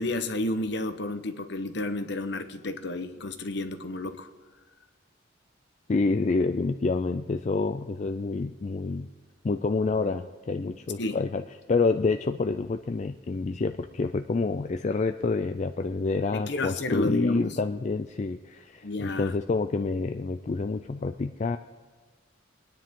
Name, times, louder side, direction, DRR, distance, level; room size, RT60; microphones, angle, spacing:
voice 1, 0.0-4.3 11.0-11.2 16.3-17.6 18.8-19.3, left 2 dB, 60° left, 8 dB, 1.0 m, -31 dB
voice 2, 5.9-9.1 9.4-11.4 11.7-21.6, left 3 dB, 35° left, 8 dB, 0.4 m, -28 dB
23.0 x 10.0 x 3.7 m, 1.4 s
head